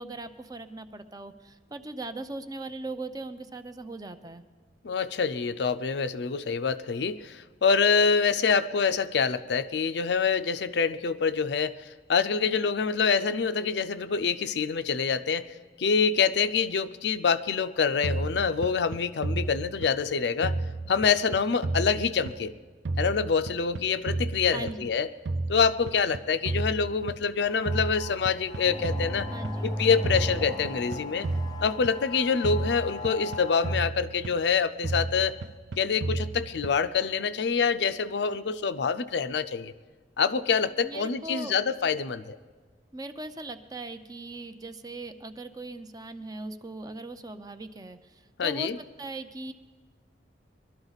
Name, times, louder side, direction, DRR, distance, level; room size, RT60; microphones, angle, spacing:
voice 1, 0.0-4.4 24.5-24.9 29.3-29.7 40.8-41.5 42.9-48.7 49.0-49.5, right 2 dB, 20° right, 9 dB, 0.5 m, -39 dB
voice 2, 4.8-20.6 20.9-22.5 23.0-25.1 25.5-29.3 29.6-31.3 31.6-35.4 35.8-39.7 40.2-42.4 48.4-48.8, left 5 dB, 70° left, 12 dB, 0.5 m, -26 dB
sound 1, 18.0-20.1 20.4-22.6 22.9-25.0 25.3-27.4 27.7-29.6 30.0-32.1 32.4-34.5 34.8-37.0, right 2 dB, 85° right, 0.5 m, -33 dB
sound 2, 27.5-33.8, left 5 dB, 25° left, 0.6 m, -42 dB
sound 3, 28.6-32.5, equal, 5° right, 1.1 m, -36 dB
22.0 x 12.0 x 4.0 m, 1.4 s
head